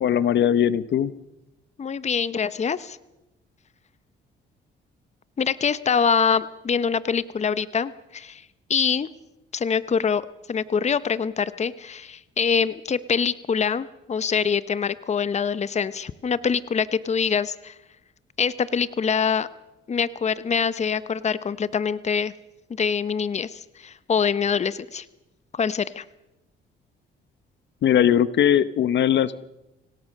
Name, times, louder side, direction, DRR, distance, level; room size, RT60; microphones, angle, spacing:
voice 1, 0.0-1.1 27.8-29.4, left 9 dB, 65° left, 16 dB, 0.9 m, -20 dB
voice 2, 1.8-3.0 5.4-8.4 8.7-9.1 9.5-10.2 10.5-17.7 18.4-19.5 19.9-22.3 22.7-25.1 25.5-26.0, left 6 dB, 35° left, 16 dB, 0.9 m, -24 dB
25.0 x 17.5 x 6.5 m, 0.94 s
cardioid pair, 90°, 20 cm